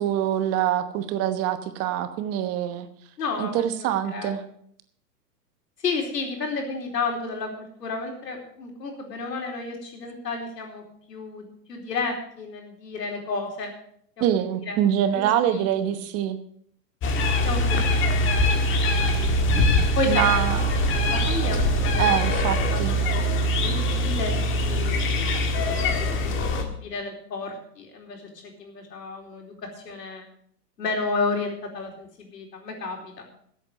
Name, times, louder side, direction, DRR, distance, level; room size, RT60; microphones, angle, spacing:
voice 1, 0.0-2.9 3.4-4.4 14.2-16.4 20.1-20.6 22.0-23.0, right 11 dB, 30° right, 10 dB, 1.1 m, -24 dB
voice 2, 3.2-4.4 5.8-10.8 11.1-13.7 14.2-14.3 14.6-14.8 15.5-15.7 17.4-18.6 18.9-19.5 19.9-20.2 20.7-22.1 22.7-22.8 23.4-25.1 25.6-28.2 28.6-29.5 29.8-30.3 30.8-33.2, left 4 dB, 85° left, 2 dB, 4.3 m, -32 dB
sound 1, 17.0-26.6, left 1 dB, 25° left, 1.8 m, -23 dB
14.0 x 8.3 x 6.7 m, 0.66 s
hypercardioid pair, 130°, 48 cm